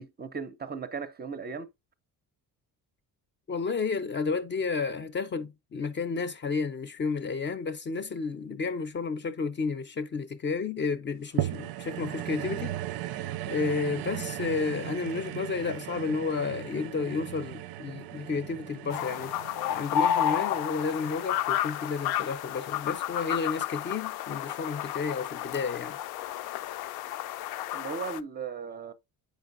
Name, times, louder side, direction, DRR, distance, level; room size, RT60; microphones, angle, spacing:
voice 1, 0.0-1.7 27.7-28.9, right 5 dB, 25° right, 0.5 m, -37 dB
voice 2, 3.5-12.8 13.5-19.3 19.7-26.0, left 4 dB, 30° left, 0.5 m, -31 dB
sound 1, 11.4-21.9 22.5-22.6, right 14 dB, 80° right, 0.5 m, -37 dB
sound 2, 18.9-28.2, left 10 dB, 85° left, 0.5 m, -31 dB
8.1 x 5.2 x 2.5 m
cardioid pair, 150°, 36 cm